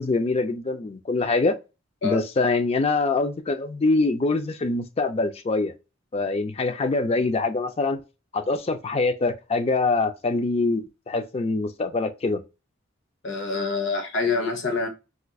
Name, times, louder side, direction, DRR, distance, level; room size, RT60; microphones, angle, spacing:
voice 1, 0.0-1.6 2.0-5.7 6.1-8.0 8.3-12.4, left 3 dB, 30° left, 0.4 m, -24 dB
voice 2, 13.2-14.9, left 4 dB, 65° left, 0.9 m, -26 dB
4.3 x 2.5 x 2.3 m
head